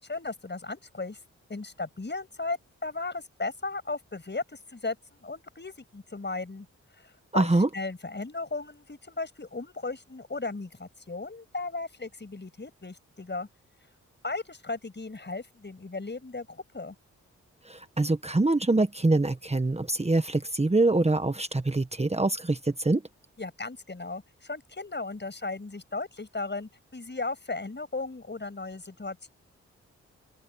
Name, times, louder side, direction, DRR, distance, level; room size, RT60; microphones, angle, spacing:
voice 1, 0.0-1.2 1.5-6.7 7.0-13.5 14.2-16.9 23.4-29.3, left 3 dB, 35° left, 6.5 m, -36 dB
voice 2, 7.3-7.7 17.6-23.0, right 2 dB, 20° right, 1.4 m, -24 dB
open air
cardioid pair, 45°, 30 cm